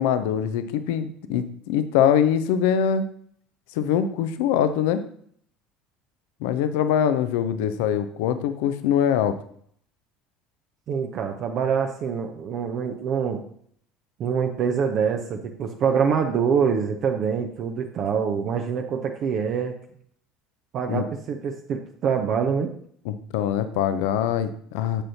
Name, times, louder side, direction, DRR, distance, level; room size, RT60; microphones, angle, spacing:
voice 1, 0.0-3.0 3.8-5.0 6.4-9.3 20.9-21.0 23.0-25.0, left 9 dB, 65° left, 11 dB, 0.7 m, -23 dB
voice 2, 10.9-13.4 14.2-19.7 20.7-22.7, right 6 dB, 45° right, 4 dB, 0.8 m, -25 dB
10.0 x 7.7 x 2.8 m, 0.62 s
figure-of-eight pair, 65°, 0 cm